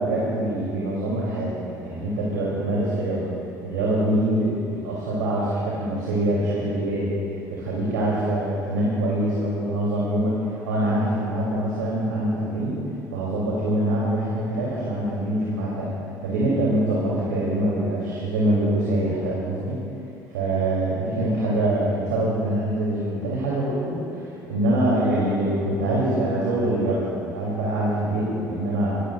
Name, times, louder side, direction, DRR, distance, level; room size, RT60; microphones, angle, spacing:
voice 1, 0.0-3.3 3.6-7.1 7.5-12.8 13.1-15.9 16.2-19.8 20.3-29.0, right 1 dB, 75° right, -6 dB, 3.3 m, -24 dB
24.0 x 16.5 x 2.5 m, 2.6 s
hypercardioid pair, 60°, 10 cm